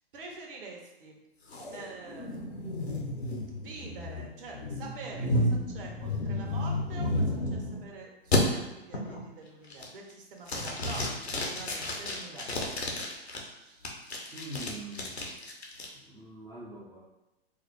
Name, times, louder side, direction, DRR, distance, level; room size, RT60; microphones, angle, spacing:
voice 1, 0.1-1.2 1.7-13.9, right 3 dB, 60° right, 0 dB, 1.1 m, -46 dB
sound 1, 1.5-7.8 8.3-8.4 8.9-9.3 9.7-10.1 10.5-13.4 13.8-15.9, left 1 dB, 90° left, 0.9 m, -32 dB
voice 2, 14.3-15.3 15.9-17.0, right 1 dB, 5° right, -9 dB, 0.3 m, -43 dB
4.7 x 2.0 x 3.1 m, 1.0 s
figure-of-eight pair, 115°, 31 cm